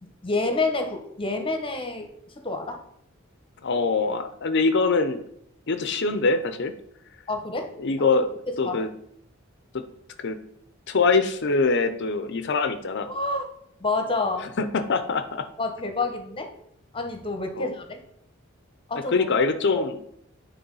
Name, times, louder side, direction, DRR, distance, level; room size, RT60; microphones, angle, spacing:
voice 1, 0.0-2.1 2.4-2.8 7.3-7.7 8.0-8.2 8.6-8.8 13.1-13.4 13.8-14.5 15.6-16.5 16.9-18.0 18.9-19.3 19.7-19.8, left 3 dB, 25° left, 5 dB, 1.1 m, -28 dB
voice 2, 3.6-5.2 5.7-6.7 7.8-8.3 8.6-8.9 9.7-9.8 10.2-10.4 10.9-13.1 14.4-15.4 17.6-17.7 19.1-20.0, left 4 dB, 60° left, 9 dB, 0.6 m, -23 dB
9.5 x 3.5 x 5.4 m, 0.75 s
head